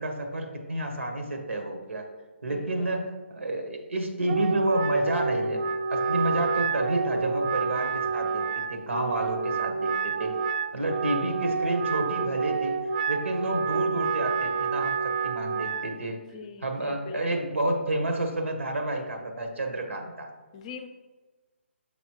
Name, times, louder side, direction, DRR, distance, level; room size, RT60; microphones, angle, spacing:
voice 1, 0.0-2.1 2.4-5.6 5.9-10.3 10.7-12.7 13.1-16.2 16.6-20.3, right 1 dB, 80° right, 3 dB, 1.3 m, -30 dB
voice 2, 2.4-2.9 13.3-13.5 16.3-17.5 20.5-20.9, left 6 dB, 30° left, 6 dB, 0.5 m, -42 dB
Wind instrument woodwind instrument, 4.2-15.9, right 5 dB, 40° right, 0.4 m, -29 dB
6.1 x 5.5 x 3.0 m, 1.2 s
figure-of-eight pair, 150°, 7 cm